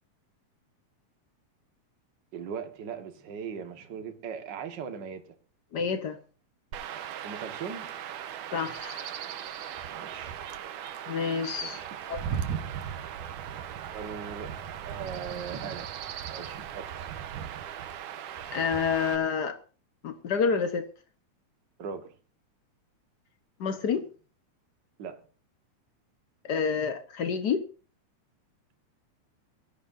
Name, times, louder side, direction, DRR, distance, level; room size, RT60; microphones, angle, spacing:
voice 1, 2.3-5.3 7.2-7.9 9.9-10.4 11.6-11.9 13.2-13.6 13.9-14.5 14.9-15.9 16.3-17.1 21.8-22.2 25.0-25.2, right 6 dB, 45° right, 1.9 m, -39 dB
voice 2, 5.7-6.2 8.5-9.1 11.1-11.8 12.1-12.2 18.5-19.6 20.0-20.9 23.6-24.0 26.4-27.6, left 6 dB, 70° left, 0.9 m, -28 dB
Chirp tweet / Wind / Stream, 6.7-19.2, right 9 dB, 85° right, 2.6 m, -38 dB
22.5 x 14.0 x 2.7 m
omnidirectional pair, 3.5 m